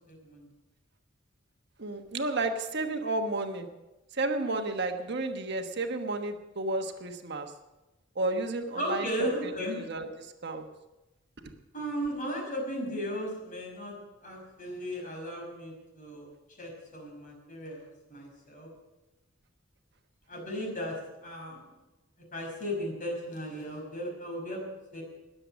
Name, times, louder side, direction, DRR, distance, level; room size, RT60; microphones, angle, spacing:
voice 1, 0.1-0.5 8.7-9.8 11.7-13.9 14.2-16.3 16.6-18.7 20.3-20.9 21.2-21.6 22.3-24.7 24.9-25.0, equal, 45° left, 0 dB, 5.4 m, -36 dB
voice 2, 1.8-3.7 4.1-7.5 8.1-10.7, right 2 dB, 60° right, 5 dB, 1.2 m, -32 dB
21.0 x 7.9 x 6.3 m, 1.0 s
head